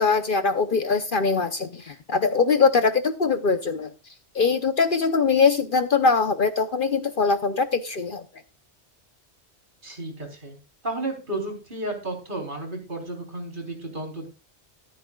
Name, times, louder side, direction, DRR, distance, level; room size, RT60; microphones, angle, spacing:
voice 1, 0.0-3.9 4.3-8.2, left 4 dB, 50° left, 10 dB, 1.0 m, -22 dB
voice 2, 9.8-10.6 10.8-14.3, right 2 dB, 45° right, 2 dB, 4.1 m, -32 dB
14.0 x 13.5 x 2.4 m, 0.28 s
omnidirectional pair, 1.2 m